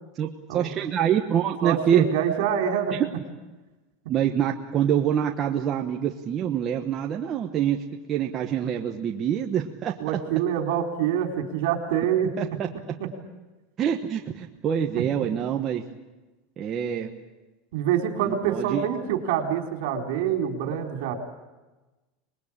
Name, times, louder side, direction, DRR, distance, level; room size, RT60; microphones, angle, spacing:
voice 1, 0.2-2.1 4.1-7.8 8.1-10.0 12.4-12.7 13.8-15.8 16.6-17.1 18.2-18.9, right 9 dB, 25° right, 2 dB, 1.2 m, -25 dB
voice 2, 1.6-2.9 10.0-12.3 15.0-15.1 17.7-21.1, right 9 dB, 60° right, 4 dB, 4.2 m, -26 dB
26.5 x 21.0 x 8.8 m, 1.1 s
supercardioid pair, 180°, 0 cm